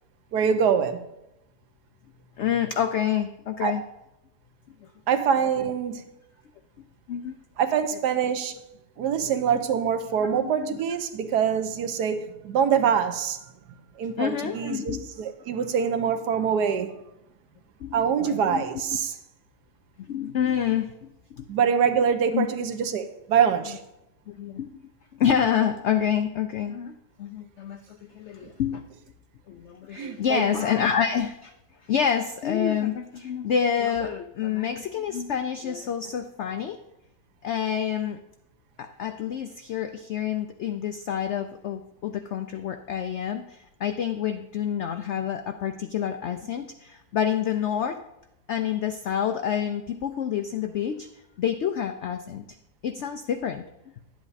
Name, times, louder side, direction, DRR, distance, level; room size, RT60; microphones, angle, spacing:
voice 1, 0.3-1.0 3.6-3.8 5.1-6.0 7.6-8.6 9.0-13.4 14.0-16.9 17.9-19.1 21.5-23.8 30.0-30.4, right 7 dB, 75° right, 9 dB, 1.3 m, -24 dB
voice 2, 2.4-3.8 7.1-7.3 9.1-9.3 10.2-10.8 14.2-15.1 17.8-18.6 20.1-21.5 22.3-22.5 24.3-26.9 27.2-28.8 29.5-31.5 31.9-36.8 37.4-38.2 38.8-48.0 48.5-51.1 51.4-52.4 52.8-53.6, left 8 dB, 85° left, 8 dB, 0.6 m, -28 dB
11.0 x 8.2 x 4.0 m, 0.89 s
omnidirectional pair, 1.8 m